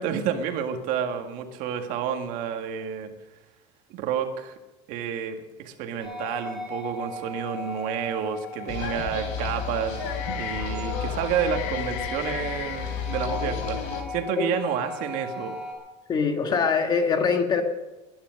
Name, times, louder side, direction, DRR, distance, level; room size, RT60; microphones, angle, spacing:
voice 1, 0.0-3.1 3.9-4.6 4.9-15.6, right 8 dB, 60° right, 6 dB, 1.9 m, -30 dB
sound 1, 6.0-15.7, left 1 dB, ahead, 6.1 m, -37 dB
sound 2, 8.7-14.0, left 5 dB, 80° left, 3.7 m, -36 dB
sound 3, 8.9-14.3, left 9 dB, 55° left, 1.1 m, -34 dB
voice 2, 16.1-17.6, left 5 dB, 25° left, 6 dB, 1.7 m, -23 dB
20.0 x 10.0 x 6.5 m, 1.1 s
cardioid pair, 155°, 16 cm